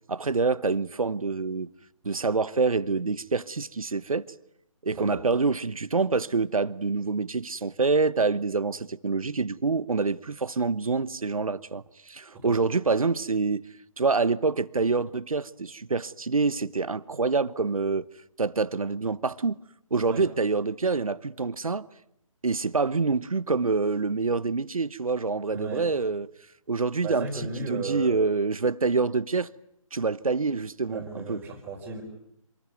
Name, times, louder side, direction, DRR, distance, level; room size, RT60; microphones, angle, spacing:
voice 1, 0.1-1.7 2.0-4.2 4.8-13.7 14.0-18.1 18.4-19.6 19.9-21.9 22.4-26.3 26.7-29.5 29.9-31.4, right 4 dB, 75° right, 1.1 m, -26 dB
voice 2, 4.9-5.2 12.3-12.7 20.1-20.2 25.5-26.0 27.0-28.2 30.9-32.0, right 3 dB, 10° right, 4.3 m, -35 dB
27.0 x 19.5 x 9.4 m
figure-of-eight pair, 155°, 18 cm